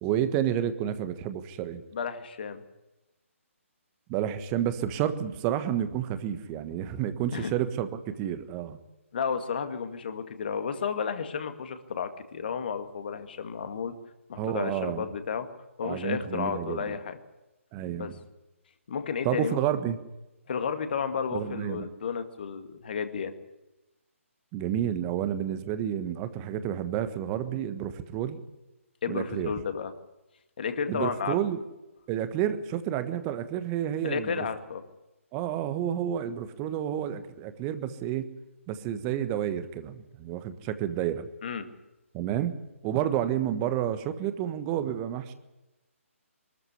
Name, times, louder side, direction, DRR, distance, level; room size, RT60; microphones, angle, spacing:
voice 1, 0.0-1.8 4.1-8.8 14.4-15.1 15.8-17.0 17.7-18.2 19.2-20.0 21.3-21.9 24.5-28.4 29.1-29.5 30.9-31.6 32.1-34.5 35.3-38.3 38.7-41.3 42.1-42.5 42.8-45.3, right 10 dB, 20° right, 11 dB, 1.3 m, -30 dB
voice 2, 1.9-2.6 7.3-7.5 9.1-13.9 14.3-15.5 15.8-17.2 17.9-18.1 18.9-19.6 20.5-23.3 29.0-29.9 30.6-31.4 34.0-34.8 41.4-41.7, left 6 dB, 45° left, 8 dB, 2.1 m, -32 dB
23.5 x 13.5 x 9.7 m, 1.0 s
figure-of-eight pair, 140°, 8 cm